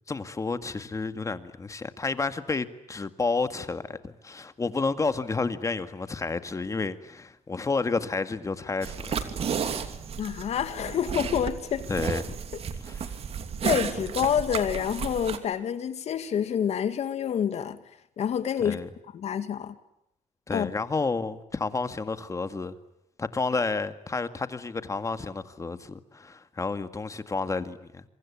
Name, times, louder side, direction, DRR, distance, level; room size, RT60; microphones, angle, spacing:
voice 1, 0.1-9.2 11.9-12.3 12.8-13.1 18.6-18.9 20.5-22.8 23.2-28.0, left 4 dB, 25° left, 2.0 m, -30 dB
sound 1, 8.8-15.4, right 7 dB, 55° right, 2.8 m, -33 dB
voice 2, 10.2-11.9 13.6-17.8 18.2-18.8 19.1-19.7 20.5-20.7, left 8 dB, 60° left, 2.3 m, -28 dB
27.0 x 25.0 x 8.5 m
cardioid pair, 110°, 12 cm